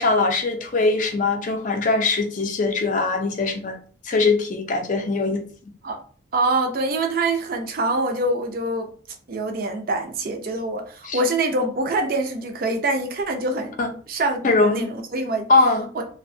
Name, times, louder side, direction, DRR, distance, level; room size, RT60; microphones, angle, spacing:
voice 1, 0.0-3.8 4.0-5.4 11.1-11.2 13.8-13.9 14.4-14.8 15.5-15.9, left 3 dB, 45° left, 5 dB, 0.4 m, -21 dB
voice 2, 6.3-8.9 9.3-13.7 14.1-15.5 15.9-16.0, right 2 dB, 50° right, 5 dB, 0.4 m, -25 dB
2.5 x 2.1 x 2.6 m, 0.43 s
head